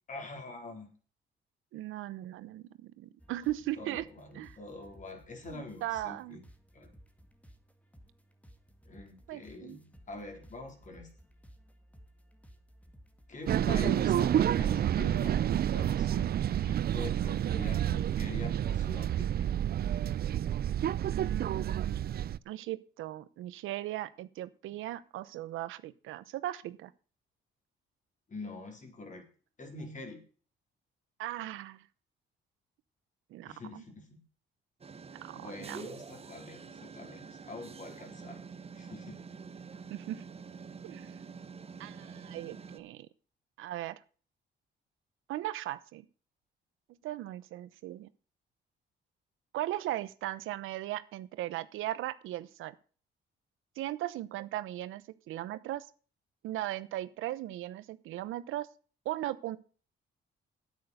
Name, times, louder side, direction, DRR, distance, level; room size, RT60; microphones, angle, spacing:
voice 1, 0.1-0.9 3.8-6.4 6.7-6.9 8.9-11.1 13.3-19.5 28.3-29.2 29.6-30.2 33.4-34.2 35.3-38.4 38.7-39.2, left 2 dB, 40° left, 4 dB, 4.2 m, -45 dB
voice 2, 1.7-4.1 4.4-4.5 5.5-6.4 9.3-9.8 13.7-14.1 21.1-26.9 31.2-31.9 33.3-33.8 35.2-35.8 39.9-40.2 40.8-41.1 41.8-43.1 43.6-44.0 45.3-46.1 47.0-48.1 49.5-52.7 53.8-55.8 56.4-58.7 59.0-59.6, right 14 dB, 90° right, 15 dB, 0.8 m, -38 dB
sound 1, 3.2-14.8, equal, 5° left, 2.0 m, -58 dB
sound 2, 13.5-22.4, right 10 dB, 50° right, 0.5 m, -29 dB
sound 3, 34.8-42.8, right 5 dB, 30° right, 1.2 m, -47 dB
9.4 x 9.0 x 6.6 m, 0.39 s
cardioid pair, 90°, 20 cm